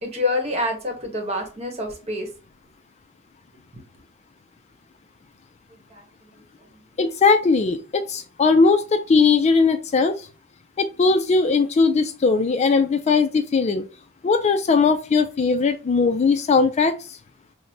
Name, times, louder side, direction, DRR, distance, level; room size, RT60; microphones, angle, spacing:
voice 1, 0.0-2.3 3.7-3.8 5.7-6.9, left 2 dB, 30° right, 3 dB, 1.1 m, -28 dB
voice 2, 7.0-10.3 10.8-13.8 14.2-17.2, left 4 dB, 35° left, 8 dB, 0.3 m, -19 dB
5.9 x 2.1 x 2.7 m, 0.33 s
head